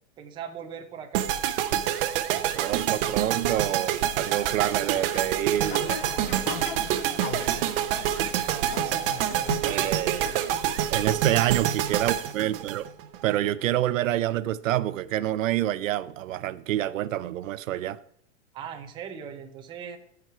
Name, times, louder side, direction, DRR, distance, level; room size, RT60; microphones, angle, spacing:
voice 1, 0.2-1.3 8.4-10.0 18.5-20.0, right 8 dB, 10° right, 0.6 m, -40 dB
sound 1, 1.1-13.3, right 11 dB, 45° right, 0.8 m, -27 dB
voice 2, 2.5-6.0 9.6-10.4 10.9-12.8 13.2-18.0, right 13 dB, 75° right, 0.6 m, -27 dB
sound 2, 5.0-10.9, left 7 dB, 40° left, 0.9 m, -39 dB
14.0 x 4.8 x 4.6 m
supercardioid pair, 155°, 39 cm